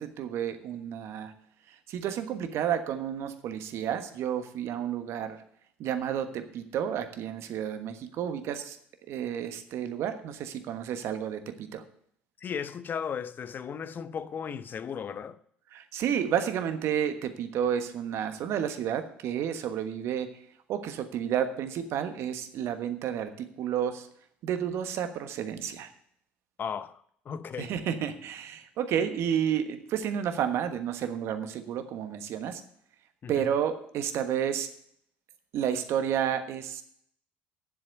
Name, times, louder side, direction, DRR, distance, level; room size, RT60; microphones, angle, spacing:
voice 1, 0.0-1.3 1.7-5.4 5.8-8.8 9.1-11.8 15.7-20.4 20.7-24.1 24.4-25.9 27.6-32.6 33.3-34.7 35.5-36.8, right 9 dB, 55° right, 1.3 m, -31 dB
voice 2, 12.4-15.4 26.6-27.7 33.2-33.5, left 7 dB, 40° left, 0.8 m, -36 dB
10.0 x 7.7 x 7.8 m
figure-of-eight pair, 60°, 5 cm